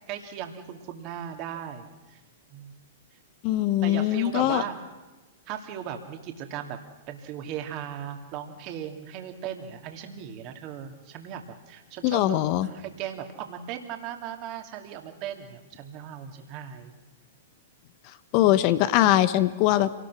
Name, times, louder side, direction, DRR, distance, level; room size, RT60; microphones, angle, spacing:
voice 1, 0.1-2.2 2.5-2.8 3.8-4.8 5.5-6.8 7.1-16.9, right 9 dB, 40° right, 4 dB, 2.7 m, -37 dB
voice 2, 3.4-4.6 12.0-12.7 18.3-19.9, left 14 dB, 45° left, 13 dB, 1.0 m, -22 dB
26.5 x 18.5 x 6.3 m, 1.2 s
hypercardioid pair, 110°, 0 cm